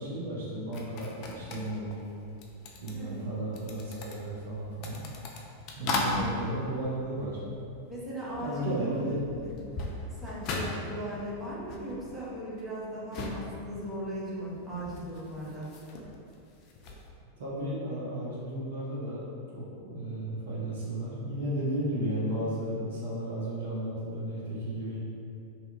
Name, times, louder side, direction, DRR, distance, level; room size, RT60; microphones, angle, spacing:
voice 1, 0.0-2.0 2.8-5.0 5.8-7.4 8.4-9.2 17.4-19.2 19.5-25.0, right 1 dB, 60° right, -6 dB, 0.5 m, -34 dB
sound 1, 0.7-8.0 8.3-17.1, left 2 dB, 40° left, 0.3 m, -39 dB
voice 2, 2.9-3.3 5.8-6.2 7.9-9.5 10.2-15.7, right 1 dB, 15° right, -8 dB, 0.7 m, -38 dB
2.7 x 2.2 x 2.5 m, 2.6 s
figure-of-eight pair, 90°, 0 cm